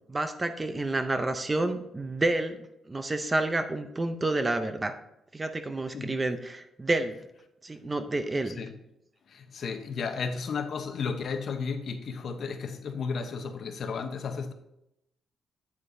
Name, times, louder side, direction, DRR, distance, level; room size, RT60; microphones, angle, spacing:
voice 1, 0.1-4.9 5.3-7.2 7.6-8.6, right 2 dB, 15° right, 8 dB, 0.5 m, -29 dB
voice 2, 8.5-8.8 9.3-14.5, left 5 dB, 50° left, 7 dB, 0.8 m, -33 dB
8.6 x 8.5 x 2.6 m, 0.84 s
cardioid pair, 155°, 0 cm